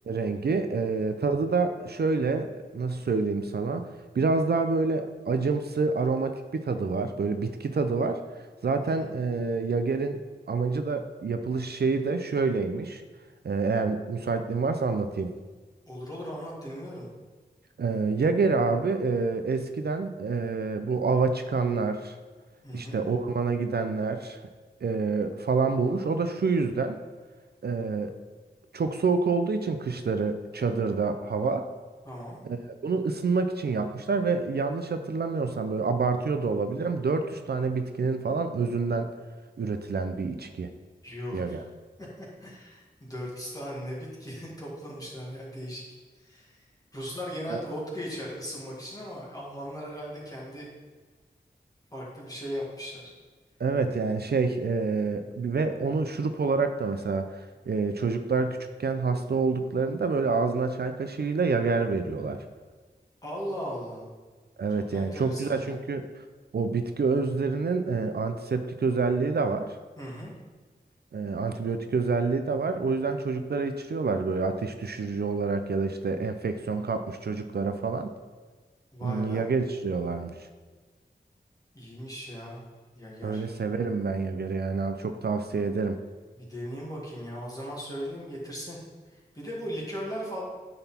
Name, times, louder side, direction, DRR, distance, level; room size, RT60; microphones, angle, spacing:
voice 1, 0.1-3.9 4.1-8.2 8.6-10.2 10.5-13.0 13.4-15.3 17.8-22.2 22.7-24.5 24.8-27.0 27.6-28.1 28.7-31.7 32.4-39.1 39.6-40.7 41.3-41.6 47.5-47.6 53.6-62.4 64.6-66.1 66.5-69.8 71.1-78.1 79.0-80.5 83.2-86.0, right 4 dB, 65° right, 8 dB, 0.5 m, -27 dB
voice 2, 15.9-17.1 22.6-23.0 32.0-32.4 41.0-41.5 42.2-45.8 46.2-46.6 46.9-50.7 51.9-53.1 63.2-64.1 64.8-65.8 70.0-70.3 78.9-79.5 81.7-82.6 82.9-83.4 86.4-88.8 89.1-90.4, equal, 20° left, -5 dB, 2.2 m, -38 dB
8.8 x 4.0 x 4.3 m, 1.4 s
wide cardioid pair, 75°, 18 cm